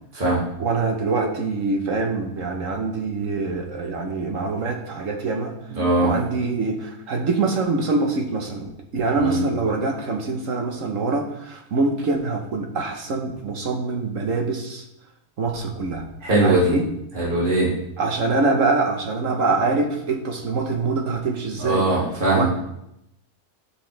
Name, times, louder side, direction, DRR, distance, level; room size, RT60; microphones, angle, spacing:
voice 1, 0.6-5.5 6.0-14.8 15.4-16.1 16.4-16.9 18.0-21.9 22.3-22.5, right 3 dB, 60° right, 3 dB, 1.4 m, -24 dB
voice 2, 5.7-6.1 9.1-9.4 16.2-16.7 17.1-17.7 21.6-22.5, right 2 dB, 30° right, -6 dB, 2.5 m, -20 dB
10.0 x 7.4 x 3.3 m, 0.82 s
omnidirectional pair, 1.6 m